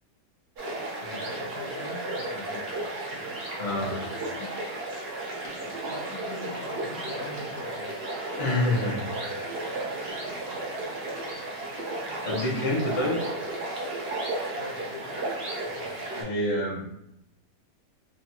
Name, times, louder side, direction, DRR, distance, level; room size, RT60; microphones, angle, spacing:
sound 1, 0.6-16.2, right 2 dB, 55° right, 0.7 m, -34 dB
voice 1, 1.0-3.3 3.7-4.5 5.5-8.0 12.0-12.6 13.1-13.4 14.6-15.3, left 3 dB, 85° left, 1 dB, 1.2 m, -43 dB
voice 2, 3.6-4.0 8.4-9.0 12.2-13.2 16.2-16.8, left 1 dB, 35° left, -5 dB, 0.4 m, -27 dB
3.2 x 2.3 x 2.8 m, 0.81 s
omnidirectional pair, 1.8 m